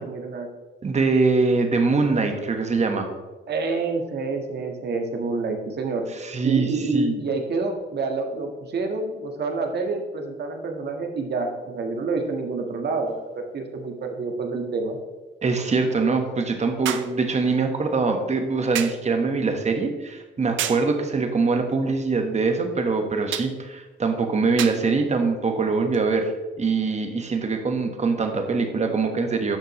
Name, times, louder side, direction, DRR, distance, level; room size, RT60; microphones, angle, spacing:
voice 1, 0.0-0.5 3.5-6.1 6.4-13.2 13.5-15.0, right 3 dB, 55° right, 3 dB, 1.6 m, -27 dB
voice 2, 0.8-3.1 6.2-7.1 15.4-26.3 26.6-29.6, right 4 dB, 35° right, 5 dB, 1.4 m, -23 dB
sound 1, 13.1-13.2 16.9-17.2 18.8-19.1 20.6-20.9 23.3-23.6 24.6-24.9 25.9-26.1, right 10 dB, 75° right, 0.7 m, -29 dB
11.5 x 6.6 x 3.2 m, 1.2 s
cardioid pair, 90°, 20 cm